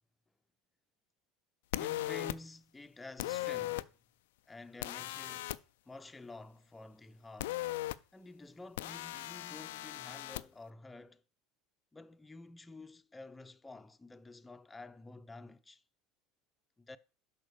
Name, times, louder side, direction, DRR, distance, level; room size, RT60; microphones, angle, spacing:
sound 1, 1.7-2.4 3.2-3.8 4.8-5.6 7.4-8.0 8.8-10.4, left 16 dB, 75° left, 0.3 m, -38 dB
voice 1, 1.8-3.9 4.5-5.6 5.8-7.6 8.1-11.2 11.9-15.8 16.8-17.0, left 3 dB, 15° left, 0.7 m, -50 dB
6.3 x 5.2 x 6.8 m
hypercardioid pair, 75°, 0 cm